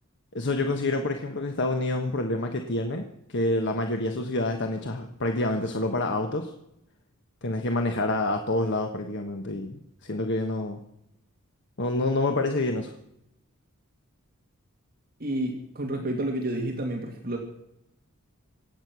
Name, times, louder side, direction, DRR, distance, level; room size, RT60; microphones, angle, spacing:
voice 1, 0.3-3.0 3.3-6.5 7.4-10.8 11.8-12.9, left 2 dB, 55° left, 5 dB, 1.3 m, -27 dB
voice 2, 15.2-17.4, right 1 dB, 45° right, 1 dB, 2.2 m, -30 dB
25.5 x 8.8 x 6.2 m, 0.83 s
head